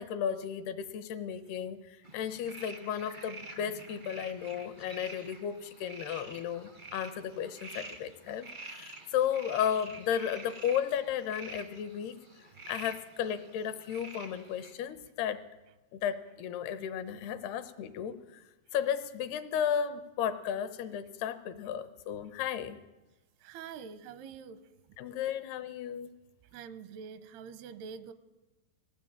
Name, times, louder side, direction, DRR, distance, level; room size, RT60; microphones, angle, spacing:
voice 1, 0.0-12.2 12.7-15.4 15.9-18.4 18.7-22.8 25.0-26.1, left 9 dB, 85° left, 11 dB, 3.1 m, -34 dB
sound 1, 2.0-14.7, right 3 dB, 55° right, 0.5 m, -48 dB
voice 2, 23.4-24.6 26.5-28.1, right 6 dB, 85° right, 13 dB, 2.9 m, -45 dB
20.0 x 16.5 x 8.9 m, 1.0 s
omnidirectional pair, 4.6 m